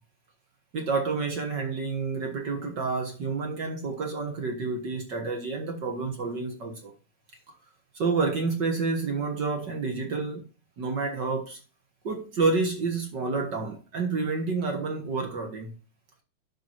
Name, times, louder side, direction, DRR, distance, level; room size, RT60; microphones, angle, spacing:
voice 1, 0.7-6.9 7.9-10.4 10.8-11.6 12.0-15.7, right 4 dB, 45° right, 1.7 m, -29 dB
11.0 x 6.0 x 4.5 m
omnidirectional pair, 3.4 m